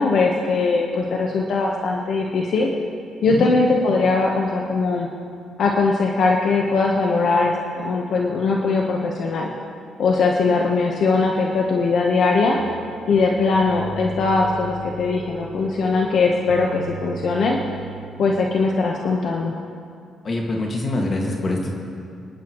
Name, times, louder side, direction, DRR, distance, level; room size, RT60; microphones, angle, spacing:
voice 1, 0.0-2.7 3.2-5.1 5.6-9.5 10.0-12.6 13.1-17.6 18.2-19.5, left 3 dB, 65° left, -1 dB, 1.1 m, -20 dB
sound 1, 12.6-18.1, right 2 dB, 70° right, 1.9 m, -36 dB
voice 2, 20.2-21.7, left 2 dB, 40° left, 0 dB, 1.9 m, -24 dB
27.0 x 10.5 x 3.1 m, 2.4 s
cardioid pair, 90°, 0 cm